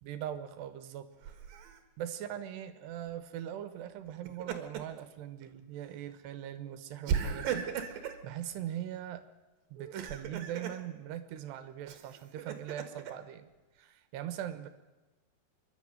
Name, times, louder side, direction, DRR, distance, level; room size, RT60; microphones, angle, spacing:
voice 1, 0.0-1.1 2.0-9.2 9.7-13.5 13.8-14.7, right 11 dB, 80° right, 11 dB, 3.3 m, -41 dB
Laughter, 1.2-1.8 4.1-5.0 5.4-5.6 7.1-8.2 9.8-10.8 11.9-13.1, right 7 dB, 65° right, 3.1 m, -36 dB
26.5 x 11.5 x 9.1 m, 1.2 s
omnidirectional pair, 4.9 m